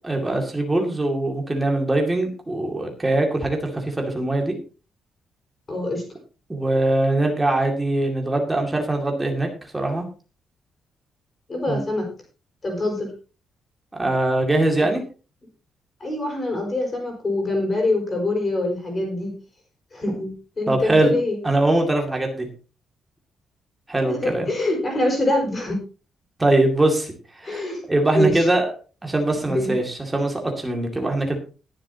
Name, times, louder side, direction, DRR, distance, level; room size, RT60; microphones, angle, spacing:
voice 1, 0.0-4.6 6.5-9.5 9.7-10.1 11.7-11.8 14.0-15.0 20.7-21.2 21.4-22.5 23.9-24.5 26.4-27.1 27.4-28.7 29.0-31.4, right 2 dB, 10° right, 2 dB, 2.3 m, -22 dB
voice 2, 5.7-6.0 11.5-12.1 12.6-13.1 16.0-19.3 19.9-21.4 24.1-25.8 27.4-27.8 28.1-28.5 29.4-29.8 30.9-31.0, left 1 dB, 25° left, 2 dB, 5.0 m, -24 dB
20.5 x 7.5 x 2.9 m, 0.35 s
cardioid pair, 180°, 0 cm